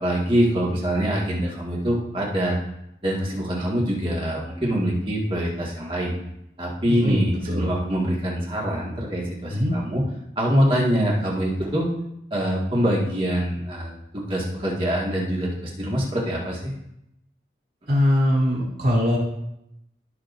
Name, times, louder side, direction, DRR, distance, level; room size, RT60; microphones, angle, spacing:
voice 1, 0.0-2.6 3.0-6.1 6.6-10.0 10.4-11.9 12.3-16.7, equal, 30° right, -3 dB, 1.9 m, -24 dB
voice 2, 6.9-7.7 9.5-9.8 17.9-19.2, left 1 dB, 55° right, -4 dB, 3.8 m, -22 dB
16.0 x 5.8 x 2.6 m, 0.82 s
head